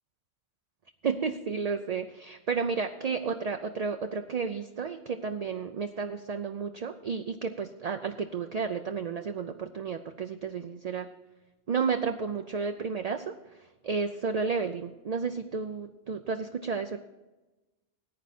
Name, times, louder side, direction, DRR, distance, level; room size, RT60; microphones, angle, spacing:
voice 1, 1.0-11.1 11.7-17.0, right 5 dB, 50° right, 7 dB, 0.5 m, -32 dB
14.5 x 9.3 x 4.3 m, 1.1 s
omnidirectional pair, 1.1 m